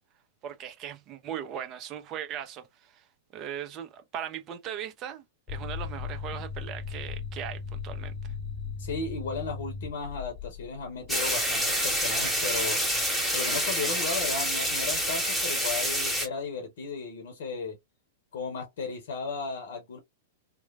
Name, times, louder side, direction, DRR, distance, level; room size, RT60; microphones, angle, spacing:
voice 1, 0.4-3.1 3.3-8.2, right 9 dB, 30° right, 0.6 m, -39 dB
sound 1, 5.5-13.1, left 5 dB, 35° left, 0.4 m, -38 dB
voice 2, 8.8-12.8 13.3-17.8 18.3-20.0, left 4 dB, 60° left, 0.8 m, -35 dB
sound 2, 11.1-16.3, equal, ahead, 1.0 m, -27 dB
3.0 x 2.1 x 2.3 m
figure-of-eight pair, 100°, 0 cm